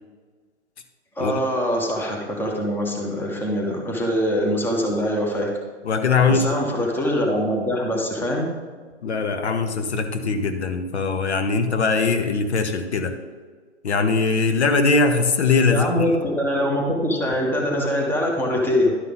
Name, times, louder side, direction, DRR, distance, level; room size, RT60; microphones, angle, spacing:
voice 1, 1.2-5.5 6.3-8.5 15.7-18.9, equal, 5° left, -1 dB, 1.1 m, -23 dB
voice 2, 5.9-6.5 9.0-13.2 13.8-16.0, left 4 dB, 65° left, 7 dB, 0.9 m, -21 dB
11.5 x 5.5 x 4.0 m, 1.5 s
figure-of-eight pair, 125°, 35 cm